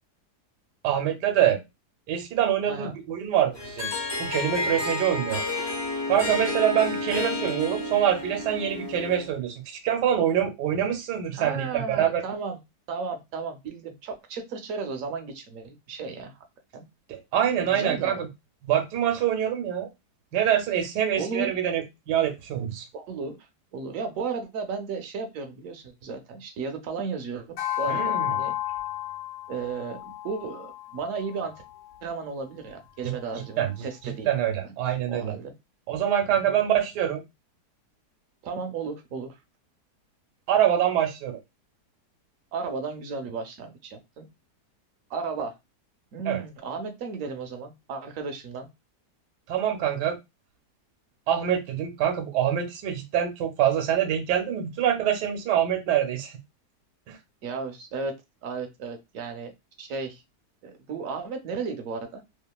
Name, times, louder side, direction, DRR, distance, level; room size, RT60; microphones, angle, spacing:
voice 1, 0.8-1.6 2.1-3.9 4.2-5.4 6.1-12.2 17.1-18.3 18.6-19.9 20.3-22.8 27.9-28.3 33.6-33.7 34.3-35.3 35.9-37.2 40.5-41.4 46.3-46.4 49.5-50.2 51.3-56.3 57.1-57.2, right 10 dB, 85° right, 1.2 m, -25 dB
voice 2, 2.7-3.0 11.3-12.6 12.9-16.4 16.7-16.9 17.6-18.3 21.2-21.5 22.9-28.5 29.5-31.5 32.0-34.3 34.6-34.7 35.1-35.5 36.5-36.6 38.4-39.4 42.5-44.2 45.1-45.5 46.1-48.7 57.4-59.5 59.8-60.2 60.6-62.2, right 4 dB, 65° right, 0.8 m, -34 dB
Harp, 3.5-9.3, left 2 dB, 30° left, 0.4 m, -30 dB
sound 1, 27.6-32.2, left 14 dB, 80° left, 1.2 m, -32 dB
2.9 x 2.4 x 2.3 m
omnidirectional pair, 1.8 m